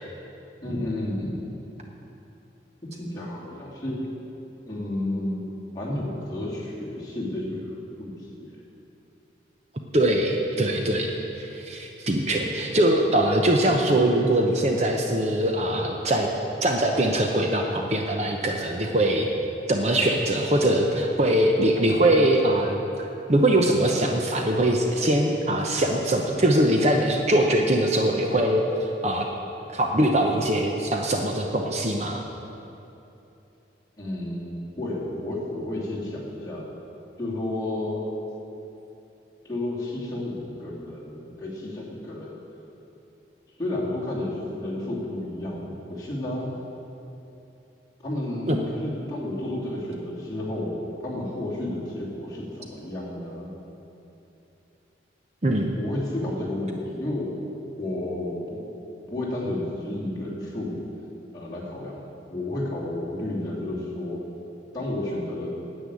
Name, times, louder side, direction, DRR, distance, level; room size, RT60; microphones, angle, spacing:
voice 1, 0.6-1.4 2.8-4.0 4.7-8.6 34.0-36.6 37.2-38.0 39.4-42.4 43.6-46.5 48.0-53.5 55.8-57.3 57.8-58.6 59.1-60.8 61.3-64.2 64.7-65.5, left 1 dB, 20° left, -7 dB, 2.8 m, -31 dB
voice 2, 9.9-16.3 16.6-19.3 19.7-22.8 23.3-29.3 29.7-32.2 48.5-48.6 55.4-55.8, right 1 dB, 35° right, 2 dB, 0.8 m, -22 dB
10.0 x 9.0 x 8.4 m, 2.9 s
head